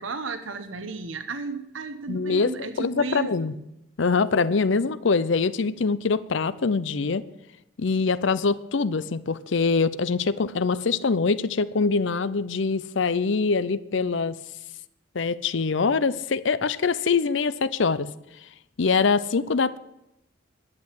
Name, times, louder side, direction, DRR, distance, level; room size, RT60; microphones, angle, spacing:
voice 1, 0.0-3.5, right 4 dB, 80° right, 9 dB, 1.0 m, -34 dB
voice 2, 2.1-3.5 4.0-7.2 7.8-14.4 15.1-18.1 18.8-19.8, left 4 dB, 70° left, 16 dB, 0.6 m, -24 dB
11.0 x 8.6 x 9.7 m, 0.86 s
head